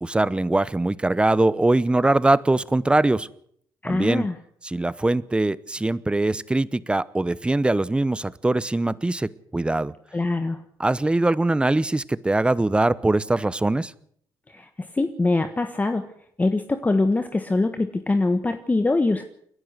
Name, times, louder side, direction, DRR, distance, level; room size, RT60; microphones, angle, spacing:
voice 1, 0.0-3.3 3.8-4.3 4.6-9.9 10.8-13.9, right 2 dB, 10° right, 19 dB, 0.9 m, -22 dB
voice 2, 3.8-4.3 10.1-10.6 14.5-16.1 16.4-19.2, left 2 dB, 20° left, 8 dB, 1.4 m, -23 dB
29.0 x 11.0 x 8.1 m, 0.65 s
cardioid pair, 90°, 8 cm